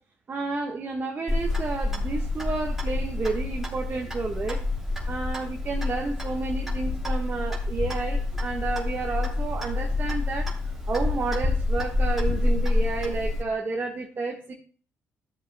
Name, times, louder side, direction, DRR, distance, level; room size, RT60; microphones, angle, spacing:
voice 1, 0.3-4.6 5.1-10.5 10.9-14.5, right 3 dB, 40° right, 1 dB, 1.3 m, -31 dB
Clock, 1.3-13.4, left 2 dB, 5° right, 3.0 m, -28 dB
14.0 x 7.6 x 2.2 m, 0.40 s
cardioid pair, 80°, 5 cm